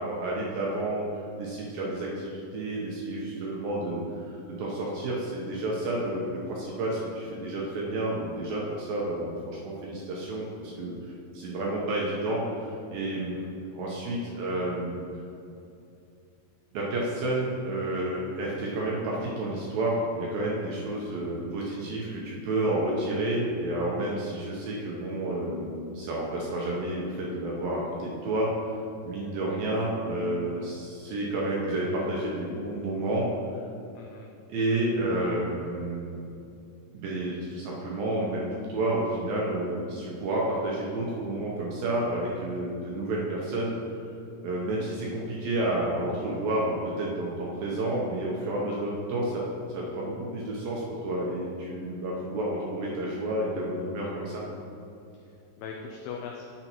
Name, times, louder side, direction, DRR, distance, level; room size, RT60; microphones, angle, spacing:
voice 1, 0.0-13.4 13.7-15.0 16.7-28.5 29.0-33.3 34.5-36.2 36.9-43.8 44.4-49.4 49.7-54.4, right 1 dB, 75° right, -4 dB, 2.2 m, -30 dB
voice 2, 13.2-13.5 24.0-24.3 29.5-29.6 33.9-34.3 55.1-56.4, left 6 dB, 85° left, 1 dB, 2.1 m, -42 dB
9.4 x 8.1 x 3.0 m, 2.6 s
omnidirectional pair, 5.0 m